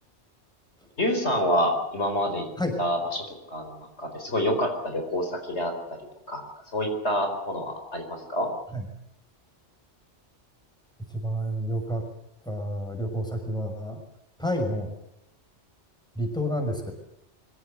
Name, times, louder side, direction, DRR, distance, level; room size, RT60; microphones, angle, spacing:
voice 1, 1.0-2.5 2.8-6.0 6.3-6.4 6.7-8.5, equal, 70° left, 4 dB, 4.7 m, -27 dB
voice 2, 11.1-12.0 12.4-14.0 14.4-14.9 16.2-16.9, equal, 5° left, 4 dB, 5.9 m, -29 dB
24.5 x 17.0 x 8.1 m, 0.81 s
omnidirectional pair, 1.2 m